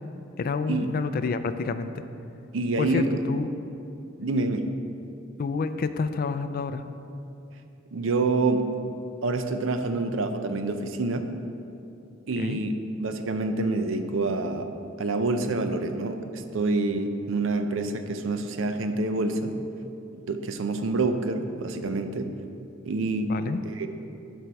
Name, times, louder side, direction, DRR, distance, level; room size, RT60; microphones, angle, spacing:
voice 1, 0.4-2.0 2.8-3.5 5.4-6.8 12.4-12.6 23.3-23.6, left 4 dB, 45° left, 11 dB, 0.3 m, -29 dB
voice 2, 2.5-3.1 4.2-4.6 7.9-8.7 9.2-11.3 12.3-14.7 15.0-19.5 20.1-22.3 22.8-23.4 23.6-23.9, right 3 dB, 75° right, 7 dB, 0.6 m, -27 dB
11.0 x 4.5 x 4.6 m, 2.8 s
head